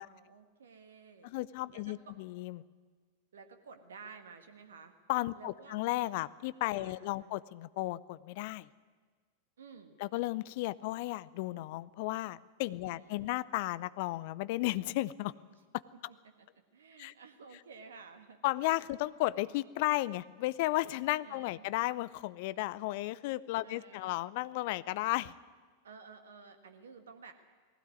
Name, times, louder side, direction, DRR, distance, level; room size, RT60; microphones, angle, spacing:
voice 1, 0.0-1.3 1.7-2.2 3.3-4.9 5.3-5.8 6.8-7.3 9.6-10.0 12.8-13.3 16.2-16.5 16.7-18.4 21.2-21.7 23.6-24.1 25.8-27.3, right 5 dB, 65° right, 8 dB, 1.6 m, -53 dB
voice 2, 1.2-2.6 5.1-8.7 10.0-15.3 15.7-15.8 17.0-17.1 18.4-25.4, left 18 dB, 50° left, 18 dB, 0.6 m, -34 dB
19.0 x 16.5 x 9.5 m, 1.5 s
figure-of-eight pair, 90°, 0 cm